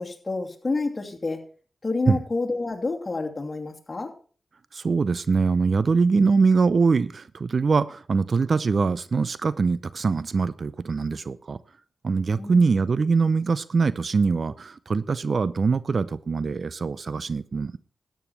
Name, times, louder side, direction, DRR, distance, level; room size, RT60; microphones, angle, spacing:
voice 1, 0.0-1.4 1.8-4.1 12.4-12.8, left 3 dB, 35° left, 2.7 m, -29 dB
voice 2, 4.7-11.6 12.0-17.8, right 4 dB, 55° right, 0.6 m, -23 dB
13.0 x 9.3 x 4.4 m
supercardioid pair, 45°, 0 cm